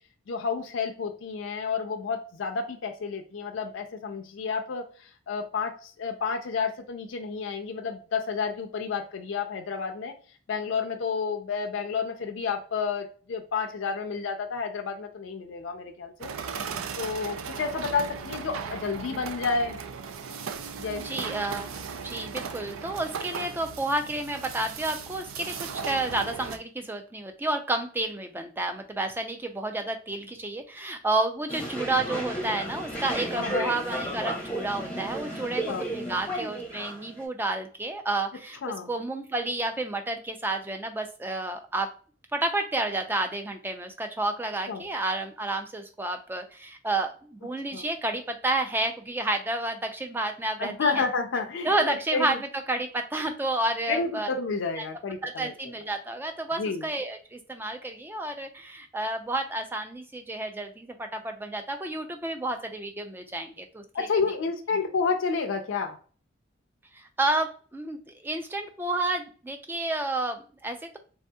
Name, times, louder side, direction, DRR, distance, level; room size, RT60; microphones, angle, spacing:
voice 1, 0.3-4.8 5.3-10.1 10.5-16.3 17.0-19.8 20.8-21.0 21.4-21.5 33.3-33.9 35.3-35.8 38.6-38.9 44.7-44.8 47.7-47.9 50.6-52.4 53.9-55.7 56.6-56.9 63.9-66.0, left 5 dB, 65° left, 0.4 m, -30 dB
sound 1, 16.2-26.6, right 6 dB, 90° right, 0.4 m, -37 dB
voice 2, 21.0-21.7 22.0-38.6 38.9-41.9 42.3-51.0 51.6-54.3 54.8-54.9 55.2-64.1 66.9-71.0, right 2 dB, 10° right, 0.3 m, -30 dB
sound 2, 31.5-37.2, right 1 dB, 5° left, 0.7 m, -33 dB
3.4 x 2.7 x 2.2 m
head